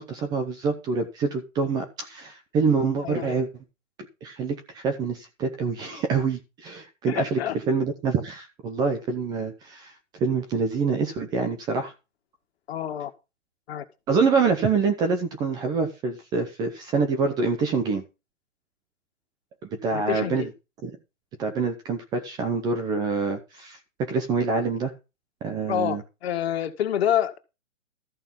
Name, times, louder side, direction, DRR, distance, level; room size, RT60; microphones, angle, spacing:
voice 1, 0.0-3.5 4.2-7.4 7.7-9.9 10.2-11.9 14.1-18.0 19.7-20.5 20.8-20.9 21.4-24.9 25.4-26.0, right 4 dB, 10° right, 7 dB, 0.6 m, -26 dB
voice 2, 3.0-3.4 7.1-7.6 12.7-13.1 13.7-13.9 19.9-20.5 25.7-27.4, left 10 dB, 50° left, 7 dB, 1.9 m, -27 dB
13.5 x 5.4 x 7.2 m, 0.28 s
hypercardioid pair, 155°, 39 cm